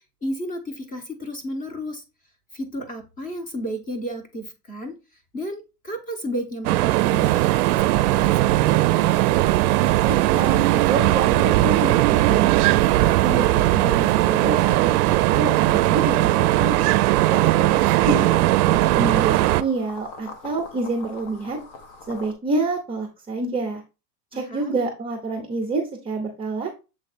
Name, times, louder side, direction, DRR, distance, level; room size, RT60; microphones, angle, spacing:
voice 1, 0.2-2.0 2.5-4.9 5.3-9.1 18.1-18.3 24.3-24.8, equal, 15° left, 6 dB, 1.2 m, -33 dB
sound 1, 6.6-19.6, right 17 dB, 70° right, 0.5 m, -19 dB
sound 2, 6.9-22.3, left 3 dB, 40° left, 1.1 m, -43 dB
voice 2, 9.8-12.5 13.0-16.7 17.3-21.6 22.1-23.8 24.3-26.7, right 3 dB, 10° right, 1 dB, 0.8 m, -28 dB
7.3 x 3.2 x 4.3 m, 0.29 s
supercardioid pair, 150°, 48 cm